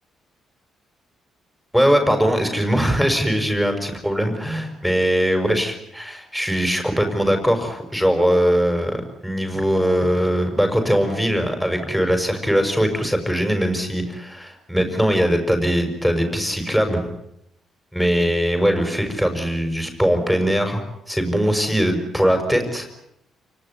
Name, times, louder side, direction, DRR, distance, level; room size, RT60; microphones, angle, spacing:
voice 1, 1.7-17.1 17.9-22.9, equal, ahead, 5 dB, 6.3 m, -21 dB
29.0 x 19.0 x 9.8 m, 0.80 s
cardioid pair, 90°, 0 cm